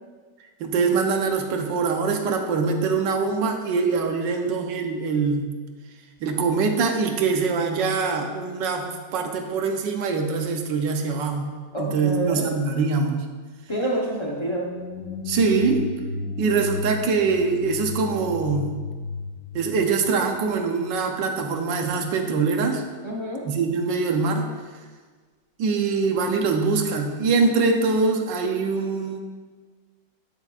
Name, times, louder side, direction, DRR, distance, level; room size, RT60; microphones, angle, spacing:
voice 1, 0.6-5.5 6.2-8.9 9.1-13.2 15.3-15.9 16.4-18.8 19.5-22.8 23.5-24.5 25.6-29.2, right 4 dB, 75° right, 4 dB, 1.4 m, -23 dB
voice 2, 11.7-12.5 13.7-14.7 23.0-23.4, right 1 dB, 25° left, -3 dB, 0.7 m, -28 dB
sound 1, 14.5-20.6, left 4 dB, 70° left, 0.9 m, -34 dB
8.9 x 7.8 x 2.4 m, 1.5 s
omnidirectional pair, 2.0 m